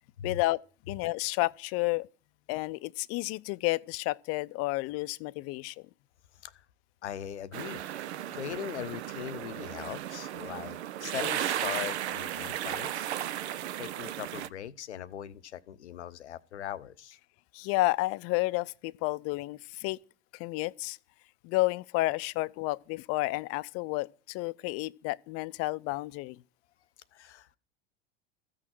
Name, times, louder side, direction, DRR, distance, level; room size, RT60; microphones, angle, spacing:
voice 1, 0.2-0.6 0.9-2.1 2.5-5.7 17.5-20.0 20.4-21.0 21.4-26.4, left 20 dB, 45° left, 0.5 m, -31 dB
voice 2, 7.0-7.8 8.3-13.1 13.8-17.2 27.1-27.6, left 10 dB, 80° left, 0.7 m, -40 dB
sound 1, 7.5-14.5, right 12 dB, 75° right, 0.6 m, -35 dB
14.0 x 6.3 x 7.7 m
figure-of-eight pair, 75°, 34 cm